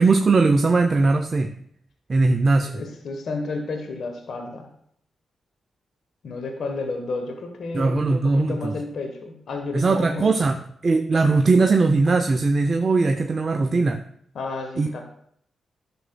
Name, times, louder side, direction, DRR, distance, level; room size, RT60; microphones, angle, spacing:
voice 1, 0.0-1.5 2.1-2.8 7.7-8.7 9.7-10.6 10.8-14.0 14.8-14.9, right 3 dB, 45° right, 6 dB, 0.5 m, -19 dB
voice 2, 2.6-4.7 6.2-10.5 14.3-15.0, left 3 dB, 70° left, 5 dB, 1.1 m, -32 dB
11.0 x 6.1 x 2.2 m, 0.67 s
hypercardioid pair, 40°, 0 cm